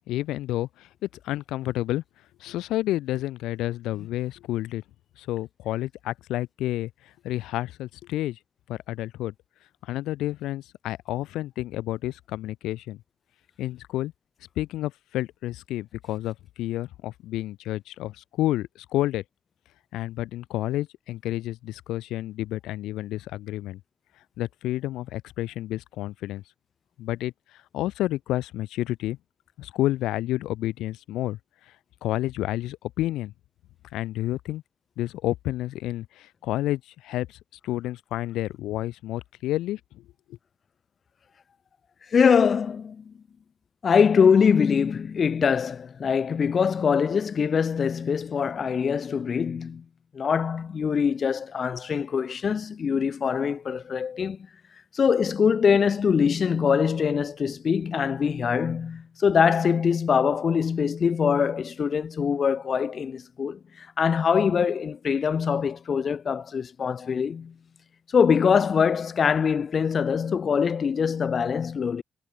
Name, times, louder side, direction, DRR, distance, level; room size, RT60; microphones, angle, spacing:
voice 1, 0.1-2.0 2.4-4.8 5.2-8.4 8.7-9.3 9.8-13.0 13.6-14.1 14.6-19.2 19.9-23.8 24.4-26.4 27.0-27.3 27.7-29.2 29.6-31.4 32.0-33.3 33.9-34.6 35.0-40.0, left 15 dB, 90° left, 2.8 m, -30 dB
voice 2, 42.1-43.1 43.8-49.8 50.1-54.5 54.9-67.5 68.1-72.0, left 6 dB, 45° left, 0.8 m, -23 dB
cardioid pair, 90°, 0 cm